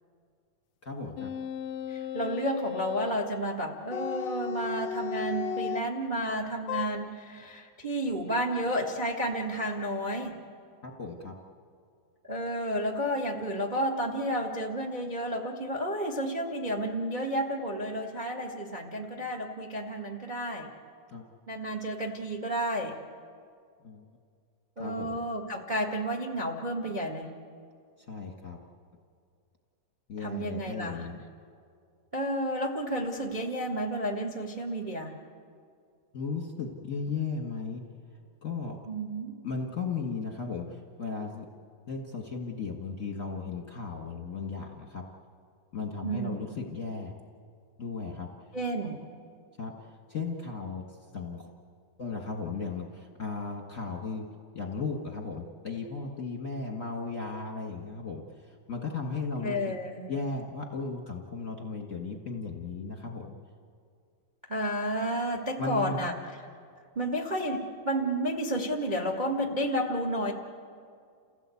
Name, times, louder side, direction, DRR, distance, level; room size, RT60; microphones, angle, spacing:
voice 1, 0.8-1.3 10.8-11.3 21.1-21.2 23.8-24.1 24.8-25.2 28.0-28.6 30.1-31.2 36.1-37.8 38.4-38.8 39.4-41.5 41.9-45.0 45.7-47.1 47.8-48.5 49.6-50.8 51.1-51.5 52.0-54.3 54.5-59.7 60.1-63.3 65.6-66.1, left 4 dB, 40° left, 1 dB, 1.1 m, -36 dB
sound 1, 1.2-3.2 3.9-5.9 6.7-6.9, left 8 dB, 90° left, 1.4 m, -35 dB
voice 2, 1.9-10.4 12.2-20.7 21.5-23.0 24.8-27.3 30.2-31.1 32.1-35.2 38.9-39.3 46.0-46.3 48.5-49.0 59.4-60.1 64.5-66.1 66.9-70.3, equal, 70° right, 1 dB, 0.4 m, -31 dB
29.0 x 16.5 x 8.4 m, 2.3 s
omnidirectional pair, 3.9 m